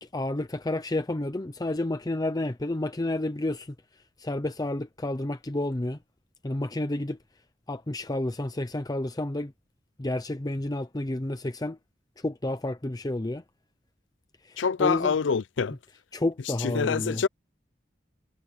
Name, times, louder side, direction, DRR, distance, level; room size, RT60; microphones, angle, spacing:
voice 1, 0.0-3.7 4.2-6.0 6.4-7.2 7.7-9.5 10.0-11.8 12.2-13.4 14.4-15.2 16.1-17.2, left 1 dB, 20° left, 0.7 m, -30 dB
voice 2, 14.6-15.8 16.6-17.3, left 5 dB, 85° left, 0.5 m, -25 dB
head